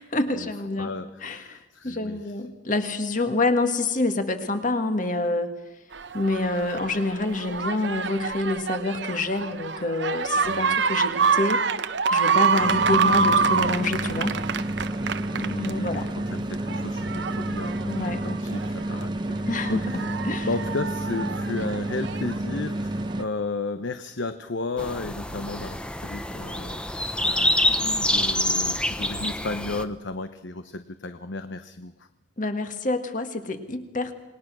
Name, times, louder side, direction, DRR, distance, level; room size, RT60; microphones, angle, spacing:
voice 1, 0.0-0.9 1.2-1.6 1.8-5.5 6.1-11.6 12.1-14.4 15.6-16.0 17.9-18.2 19.5-20.5 32.4-34.1, left 2 dB, 40° left, 7 dB, 1.9 m, -27 dB
voice 2, 0.8-2.4 10.4-10.8 15.3-20.1 20.4-27.0 27.2-32.1, left 3 dB, 75° left, 10 dB, 0.9 m, -34 dB
sound 1, 5.9-16.1 16.5-19.0 19.6-22.4 23.2-23.3, right 5 dB, 65° right, 0.9 m, -26 dB
sound 2, 12.6-23.3, right 1 dB, 25° right, 0.8 m, -30 dB
sound 3, 24.8-29.8, left 1 dB, 5° left, 0.8 m, -26 dB
27.5 x 20.5 x 6.2 m, 0.99 s
head